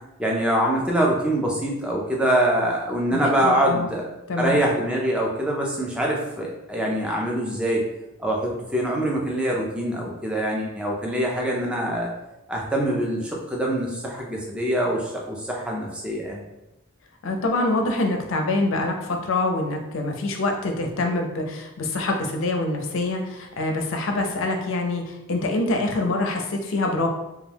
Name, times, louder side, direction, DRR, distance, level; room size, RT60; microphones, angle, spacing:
voice 1, 0.2-4.0 4.4-7.8 8.2-12.1 12.5-16.4, right 1 dB, 5° right, -2 dB, 0.4 m, -24 dB
voice 2, 3.1-3.9 4.3-4.6 17.2-27.1, left 2 dB, 70° left, 3 dB, 0.4 m, -25 dB
2.2 x 2.2 x 3.3 m, 0.94 s
head